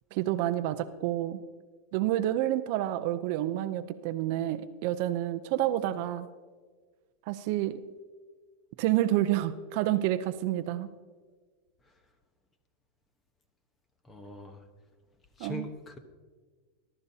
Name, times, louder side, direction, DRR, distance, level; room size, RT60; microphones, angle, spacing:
voice 1, 0.1-1.4 1.9-6.3 7.3-7.8 8.8-10.9 15.4-15.7, right 13 dB, 50° right, 11 dB, 0.6 m, -29 dB
voice 2, 14.1-14.6 15.4-16.0, left 2 dB, 15° left, 8 dB, 1.1 m, -41 dB
21.5 x 12.0 x 2.8 m, 1.5 s
supercardioid pair, 155°, 0 cm